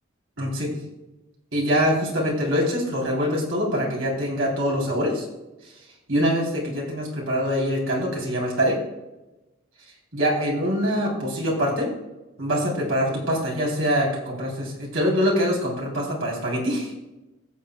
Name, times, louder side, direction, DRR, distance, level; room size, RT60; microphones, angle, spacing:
voice 1, 0.4-0.8 1.5-5.2 6.1-8.8 10.1-11.9 12.4-16.9, equal, 75° right, -2 dB, 3.6 m, -24 dB
16.5 x 7.5 x 2.3 m, 1.0 s
head